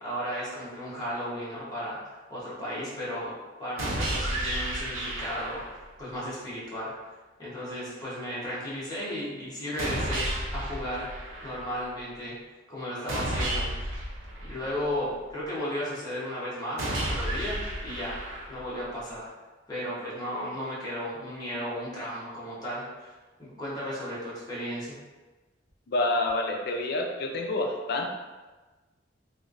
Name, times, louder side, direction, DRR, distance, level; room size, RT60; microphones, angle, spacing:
voice 1, 0.0-5.6 6.0-7.1 7.4-11.1 11.4-12.3 12.7-13.7 14.4-18.2 18.5-19.3 19.7-23.1 23.4-25.0, equal, 20° left, -8 dB, 1.0 m, -35 dB
sound 1, 3.8-5.8 9.8-11.8 13.1-15.1 16.8-18.8, right 1 dB, 85° right, 0.7 m, -32 dB
voice 2, 25.9-28.1, left 2 dB, 60° left, 2 dB, 0.4 m, -28 dB
3.1 x 3.1 x 2.5 m, 1.2 s
head